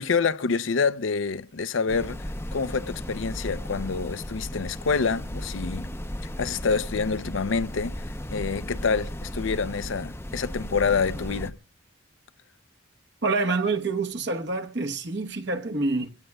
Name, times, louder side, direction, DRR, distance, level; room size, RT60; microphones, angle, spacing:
voice 1, 0.0-2.2 2.5-5.9 6.4-7.9 8.3-11.5, left 5 dB, 75° left, 0.6 m, -27 dB
Binaural noise that tickles the brain, 1.9-11.5, left 1 dB, 10° left, 0.6 m, -35 dB
voice 2, 13.2-16.1, right 3 dB, 60° right, 1.1 m, -27 dB
24.5 x 17.0 x 2.3 m
head